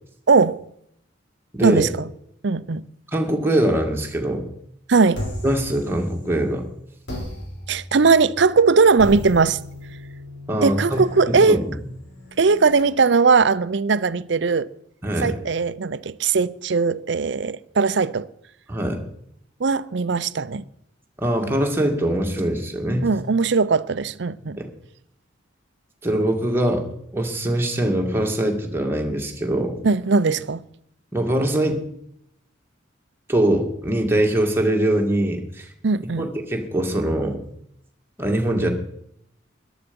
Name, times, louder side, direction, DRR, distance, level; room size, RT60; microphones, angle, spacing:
voice 1, 0.3-0.6 1.6-2.1 2.4-2.8 4.9-5.3 7.7-9.6 10.6-11.6 12.4-14.7 15.2-18.3 19.6-20.7 23.0-24.6 29.8-30.6 35.8-36.3, right 4 dB, 60° right, 0.6 m, -19 dB
voice 2, 3.1-4.4 5.4-6.6 10.5-11.6 15.0-15.3 18.7-19.0 21.2-23.1 24.6-24.7 26.0-26.9 27.1-29.8 31.1-31.8 33.3-35.7 36.2-37.4 38.2-38.7, right 1 dB, 10° right, 2.0 m, -22 dB
sound 1, 5.1-6.5 7.1-12.8, left 1 dB, 60° left, 5.6 m, -36 dB
14.0 x 11.0 x 5.3 m
head